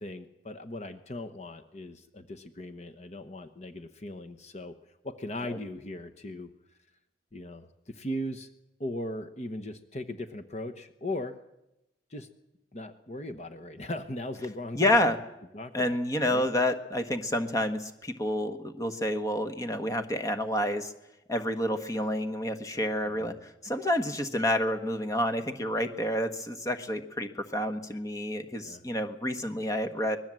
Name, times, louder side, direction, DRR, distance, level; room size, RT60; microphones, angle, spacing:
voice 1, 0.0-4.7 5.0-6.5 7.3-8.5 8.8-11.4 12.1-12.3 12.7-15.1 15.5-16.5 23.0-23.4 28.6-28.8, left 1 dB, 35° left, 7 dB, 1.1 m, -38 dB
voice 2, 14.7-15.2 15.7-20.9 21.3-30.2, left 1 dB, 20° left, 7 dB, 1.4 m, -29 dB
25.0 x 20.0 x 7.6 m, 0.91 s
head